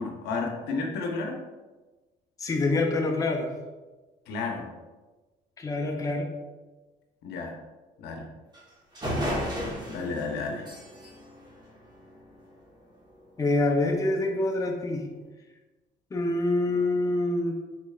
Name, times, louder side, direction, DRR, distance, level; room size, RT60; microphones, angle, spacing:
voice 1, 0.0-1.4 4.3-4.7 7.2-7.5 8.0-8.2 9.9-10.7, left 4 dB, 80° left, 2 dB, 0.7 m, -32 dB
voice 2, 2.4-3.5 5.6-6.3 13.4-15.0 16.1-17.5, left 2 dB, 20° left, 1 dB, 0.5 m, -26 dB
sound 1, 8.5-8.6 8.9-12.4, equal, 25° right, 1.2 m, -34 dB
3.9 x 3.1 x 2.3 m, 1.2 s
cardioid pair, 110°, 17 cm